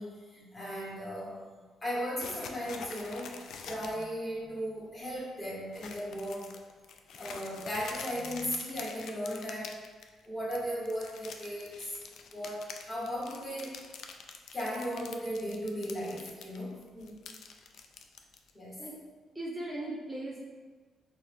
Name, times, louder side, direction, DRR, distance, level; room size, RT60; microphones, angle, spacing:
voice 1, 0.0-1.4 1.8-6.5 7.2-9.8 10.3-12.0 12.3-13.7 14.5-16.8 18.5-18.8, equal, 25° left, -6 dB, 1.3 m, -36 dB
sound 1, 2.2-4.0 4.4-4.5 4.9-5.2 5.7-10.2 10.5-16.6 16.8-18.5, left 6 dB, 75° left, 0.3 m, -46 dB
voice 2, 16.9-17.4 18.8-19.0 19.3-20.4, right 1 dB, 10° right, -5 dB, 0.7 m, -39 dB
4.3 x 2.0 x 3.4 m, 1.4 s
cardioid pair, 90°, 0 cm